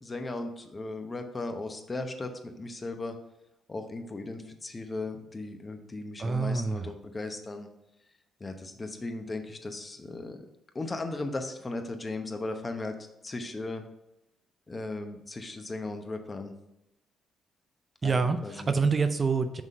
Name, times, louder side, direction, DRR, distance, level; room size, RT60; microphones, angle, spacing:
voice 1, 0.0-3.2 3.7-7.7 8.4-10.4 10.7-12.9 13.2-13.8 14.7-16.5 18.0-18.7, left 2 dB, 25° left, 6 dB, 0.8 m, -37 dB
voice 2, 6.2-6.9 18.0-18.4 18.7-19.6, right 4 dB, 35° right, 8 dB, 0.4 m, -26 dB
6.1 x 3.7 x 5.4 m, 0.90 s
cardioid pair, 90°, 0 cm